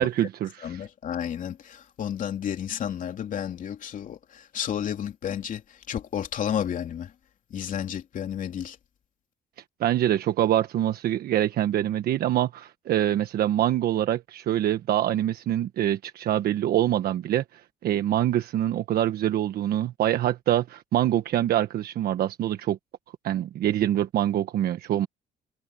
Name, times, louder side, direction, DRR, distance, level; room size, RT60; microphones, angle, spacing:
voice 1, 0.0-0.8 9.8-22.8 23.2-25.1, right 12 dB, 65° right, 1.3 m, -25 dB
voice 2, 0.6-7.1 7.5-8.8, left 9 dB, 50° left, 3.0 m, -32 dB
cardioid pair, 110°, 17 cm